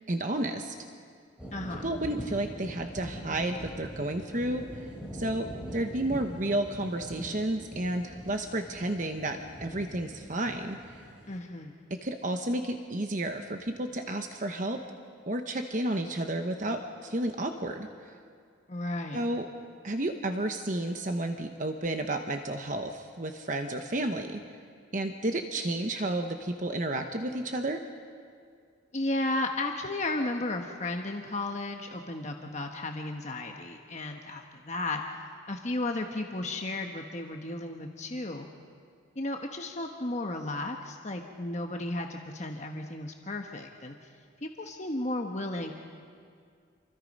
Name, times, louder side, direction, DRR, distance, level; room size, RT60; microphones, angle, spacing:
voice 1, 0.1-0.7 1.8-4.8 5.1-11.0 11.9-14.8 15.3-17.9 19.1-19.5 19.8-24.4 24.9-27.8, right 1 dB, 40° right, 5 dB, 1.0 m, -31 dB
sound 1, 1.4-11.4, equal, 5° right, 3.6 m, -43 dB
voice 2, 1.5-1.9 11.3-11.8 18.7-19.2 28.9-35.0 35.5-38.5 39.2-44.0 44.4-45.7, left 2 dB, 35° left, 3 dB, 1.1 m, -34 dB
28.0 x 24.0 x 5.4 m, 2.2 s
head